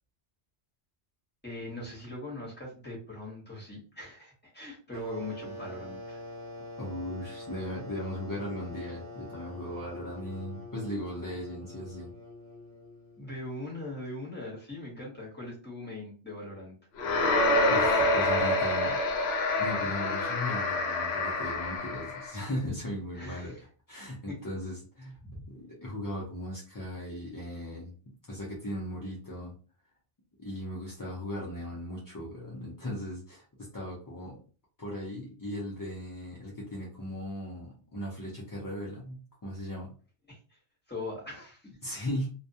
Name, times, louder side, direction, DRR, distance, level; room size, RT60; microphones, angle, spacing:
voice 1, 1.4-6.2 13.2-16.7 23.1-23.6 24.3-24.4 25.2-25.4 40.3-40.6 40.9-41.9, left 2 dB, 10° left, -4 dB, 0.9 m, -41 dB
sound 1, 4.9-13.3, left 1 dB, 20° right, 0.7 m, -44 dB
voice 2, 6.8-12.1 17.6-19.0 19.6-23.5 23.9-25.2 25.5-29.5 30.4-34.4 34.8-40.0 41.8-42.3, left 1 dB, 30° left, -5 dB, 0.3 m, -37 dB
sound 2, 17.0-22.4, left 2 dB, 65° left, 0.8 m, -27 dB
2.2 x 2.2 x 2.7 m, 0.37 s
omnidirectional pair, 1.2 m